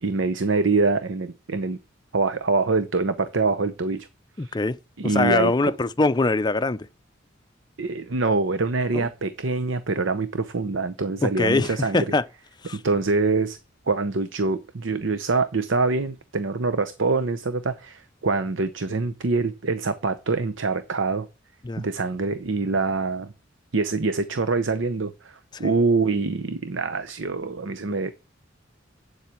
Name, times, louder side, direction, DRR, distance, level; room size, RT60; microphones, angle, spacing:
voice 1, 0.0-1.8 2.1-4.1 4.4-4.6 5.0-5.7 7.8-12.1 12.7-13.6 13.9-21.3 21.8-23.3 23.7-28.1, right 3 dB, 80° right, 0.8 m, -25 dB
voice 2, 4.4-4.8 5.0-6.9 8.9-9.1 11.2-12.2 12.6-12.8 21.6-21.8 25.6-25.7, left 3 dB, 25° left, 0.5 m, -23 dB
8.1 x 7.5 x 8.4 m
head